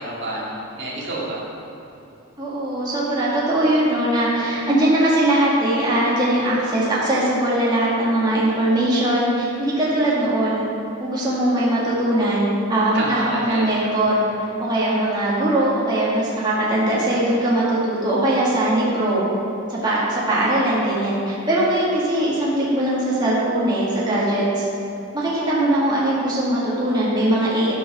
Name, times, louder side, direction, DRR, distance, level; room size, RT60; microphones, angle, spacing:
voice 1, 0.0-1.4 12.9-13.7, right 1 dB, 60° right, -5 dB, 2.3 m, -28 dB
voice 2, 2.4-10.6 11.0-14.2 14.6-19.2 19.7-24.6 25.1-27.7, right 1 dB, 20° right, -8 dB, 1.9 m, -20 dB
12.5 x 5.4 x 6.0 m, 2.9 s
head